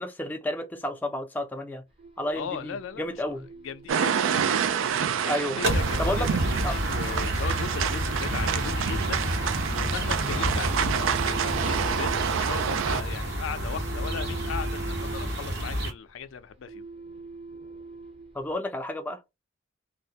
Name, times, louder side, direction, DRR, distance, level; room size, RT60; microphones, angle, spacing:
voice 1, 0.0-1.8 2.2-3.5 5.2-5.6 6.0-6.3 6.6-6.8 18.3-19.2, left 1 dB, 10° left, 0.4 m, -31 dB
sound 1, 1.9-18.5, right 3 dB, 30° right, 0.6 m, -45 dB
voice 2, 2.3-4.3 5.2-16.9, left 7 dB, 75° left, 0.4 m, -38 dB
sound 2, 3.9-13.0, right 7 dB, 80° right, 0.3 m, -28 dB
sound 3, 5.6-15.9, right 1 dB, 60° right, 0.9 m, -29 dB
2.2 x 2.0 x 2.7 m
head